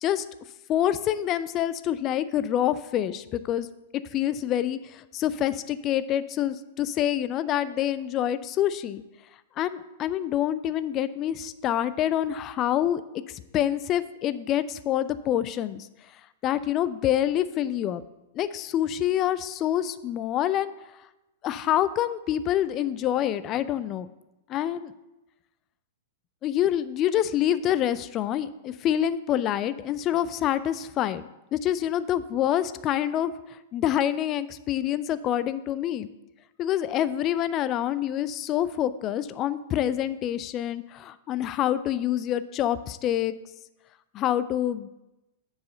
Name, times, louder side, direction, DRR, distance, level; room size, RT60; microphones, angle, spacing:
voice 1, 0.7-3.7 4.1-9.0 9.6-13.0 13.3-15.9 16.4-18.0 18.4-20.7 21.4-24.1 24.5-24.9 26.4-31.2 31.5-36.1 36.6-43.3 44.1-44.9, left 11 dB, 30° left, 15 dB, 0.3 m, -26 dB
7.4 x 4.8 x 5.3 m, 0.97 s
figure-of-eight pair, 100°, 0 cm